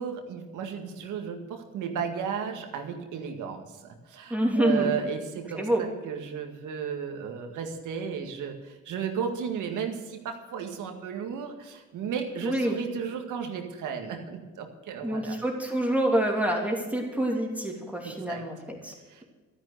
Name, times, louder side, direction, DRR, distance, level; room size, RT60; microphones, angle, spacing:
voice 1, 0.0-15.4 18.0-18.4 19.1-19.2, right 7 dB, 80° right, 4 dB, 1.9 m, -34 dB
voice 2, 4.3-4.9 5.5-5.8 12.4-12.8 15.0-18.9, right 1 dB, 5° right, 0 dB, 3.0 m, -27 dB
12.5 x 10.5 x 6.6 m, 1.3 s
cardioid pair, 90°, 30 cm